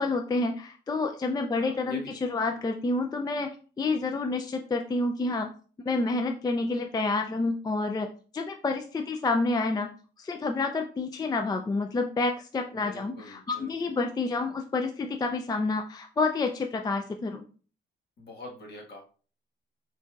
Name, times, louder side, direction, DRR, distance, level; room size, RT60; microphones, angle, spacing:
voice 1, 0.0-2.0 2.3-5.5 5.9-9.9 10.2-17.4, left 3 dB, 20° left, 5 dB, 0.4 m, -29 dB
voice 2, 1.6-2.2 2.5-2.6 12.7-13.9 18.2-19.0, left 2 dB, 55° left, -1 dB, 1.6 m, -45 dB
5.5 x 2.6 x 2.4 m, 0.39 s
cardioid pair, 90°, 20 cm